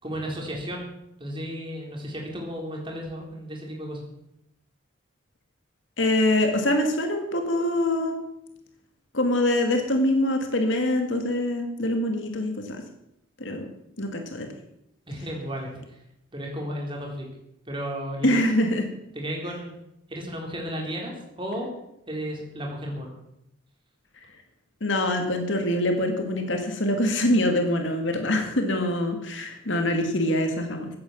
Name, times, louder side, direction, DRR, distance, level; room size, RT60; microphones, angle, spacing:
voice 1, 0.0-0.9 1.2-4.0 15.1-15.7 16.3-17.3 17.7-18.4 19.1-19.7 20.1-21.7 22.1-23.1, equal, 25° right, 0 dB, 4.0 m, -33 dB
voice 2, 6.0-8.1 9.1-12.5 13.4-13.6 14.0-14.5 18.2-18.8 24.8-30.9, left 1 dB, 65° left, 4 dB, 2.2 m, -24 dB
15.0 x 9.5 x 7.4 m, 0.80 s
head